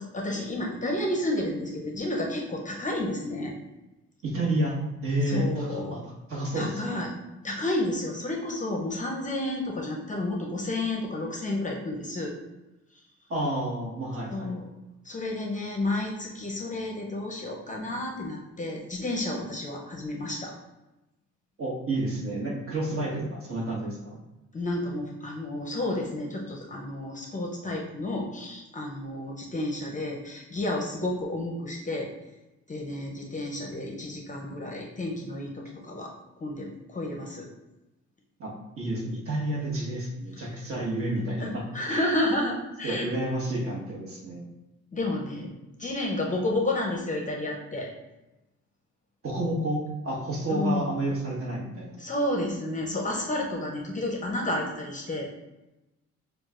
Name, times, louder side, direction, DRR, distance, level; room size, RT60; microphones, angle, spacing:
voice 1, 0.0-3.5 5.3-6.0 6.5-7.1 7.4-12.3 14.3-14.7 15.0-20.6 24.5-32.1 32.7-36.1 36.4-37.5 41.4-43.1 44.9-45.5 45.8-47.9 50.5-50.9 52.0-55.3, left 1 dB, 25° left, 0 dB, 0.6 m, -31 dB
voice 2, 4.2-4.7 5.0-6.0 6.3-7.0 13.3-14.5 21.6-24.2 38.4-42.0 42.8-44.4 49.2-52.0, right 1 dB, 45° right, -3 dB, 1.4 m, -30 dB
6.3 x 2.4 x 2.4 m, 1.0 s
cardioid pair, 90°, 30 cm